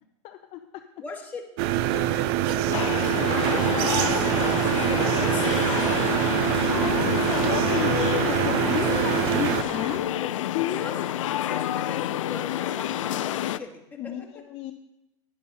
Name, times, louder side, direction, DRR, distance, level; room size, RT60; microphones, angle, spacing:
voice 1, 0.2-0.8 2.5-2.7 5.7-5.9 6.7-11.1 14.0-14.7, left 12 dB, 40° left, 6 dB, 0.7 m, -33 dB
voice 2, 1.0-6.3 6.6-6.9 10.8-14.3, left 4 dB, 10° left, -2 dB, 2.0 m, -39 dB
sound 1, 1.6-9.6, right 12 dB, 55° right, 0.5 m, -24 dB
sound 2, 2.7-13.6, left 12 dB, 85° left, 0.5 m, -29 dB
sound 3, 3.7-10.0, right 2 dB, 35° right, 2.9 m, -35 dB
11.0 x 10.5 x 4.3 m, 0.90 s
supercardioid pair, 135°, 16 cm